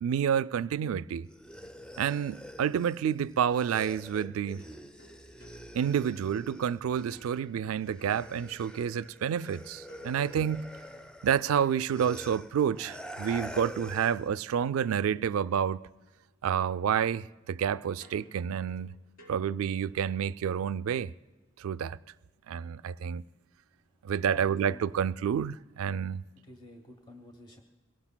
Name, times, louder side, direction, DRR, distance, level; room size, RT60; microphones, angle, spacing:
voice 1, 0.0-1.3 2.0-4.7 5.7-10.7 11.2-15.9 16.4-18.9 19.3-21.1 21.6-22.0 22.5-23.2 24.0-26.2, right 8 dB, 80° right, 0.3 m, -29 dB
sound 1, 1.3-7.5 7.8-14.3, equal, 5° left, 0.4 m, -46 dB
sound 2, 4.6-6.7 7.1-8.9 9.9-13.1 14.8-16.1 16.4-20.1, equal, 70° left, 4.6 m, -60 dB
voice 2, 24.2-25.0 26.4-27.6, left 1 dB, 20° left, 0.9 m, -50 dB
22.5 x 18.0 x 2.2 m
head